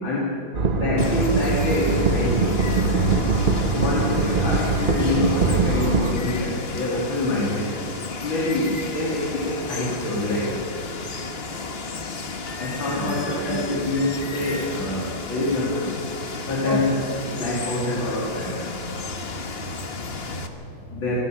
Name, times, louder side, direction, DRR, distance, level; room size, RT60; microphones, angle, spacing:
sound 1, 0.5-6.1, right 3 dB, 35° right, 0.9 m, -22 dB
voice 1, 0.8-3.2 3.7-7.7 8.2-10.5 12.6-15.9 16.5-17.0 17.4-18.5 20.9-21.2, left 2 dB, 75° left, -5 dB, 3.7 m, -26 dB
Water, 1.0-20.5, left 4 dB, 35° left, 1.3 m, -33 dB
voice 2, 13.0-13.8 16.6-16.8 17.3-17.4 19.2-20.9, right 1 dB, 60° left, -3 dB, 6.4 m, -33 dB
28.5 x 10.0 x 9.1 m, 2.8 s
omnidirectional pair, 2.2 m